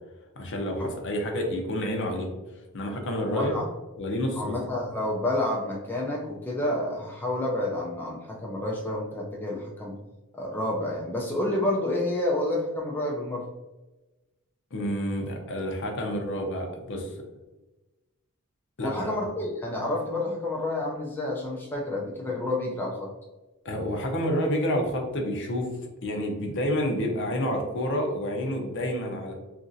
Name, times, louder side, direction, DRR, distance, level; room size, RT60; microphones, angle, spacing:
voice 1, 0.4-2.3 2.7-3.6 4.0-4.5 14.7-17.1 18.8-19.2 23.6-25.7 26.0-29.3, equal, 55° left, 2 dB, 0.6 m, -29 dB
voice 2, 3.3-3.6 4.4-10.0 10.3-13.4 18.8-23.1, left 1 dB, 10° left, -3 dB, 0.3 m, -29 dB
2.9 x 2.5 x 2.5 m, 1.1 s
head